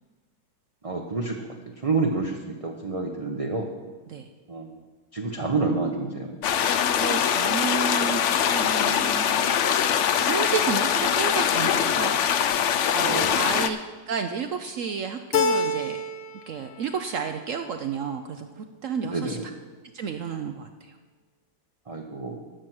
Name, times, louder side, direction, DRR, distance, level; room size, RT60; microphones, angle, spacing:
voice 1, 0.8-3.7 4.5-4.8 5.1-6.4 13.0-13.4 19.0-19.4 21.9-22.5, right 3 dB, 35° right, 1 dB, 0.6 m, -29 dB
sound 1, 6.4-13.7, left 8 dB, 85° left, 0.6 m, -23 dB
voice 2, 7.0-8.2 8.5-9.6 10.2-13.8 14.1-16.0 16.5-19.4 19.9-20.7, right 6 dB, 65° right, 7 dB, 0.8 m, -31 dB
Keyboard (musical), 15.3-16.4 16.7-17.5, left 3 dB, 60° left, 1.0 m, -26 dB
12.5 x 6.2 x 7.8 m, 1.3 s
omnidirectional pair, 1.9 m